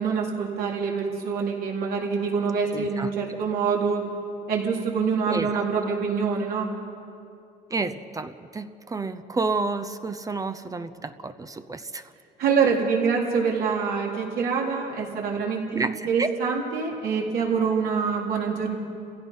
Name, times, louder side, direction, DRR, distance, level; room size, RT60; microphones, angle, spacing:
voice 1, 0.0-4.0 4.5-6.7 12.4-18.8, right 5 dB, 70° right, -2 dB, 3.9 m, -25 dB
voice 2, 2.7-3.1 5.3-5.5 7.7-12.0 15.7-16.3, right 3 dB, 20° right, 10 dB, 0.7 m, -30 dB
29.5 x 16.5 x 5.6 m, 2.6 s
cardioid pair, 110°, 17 cm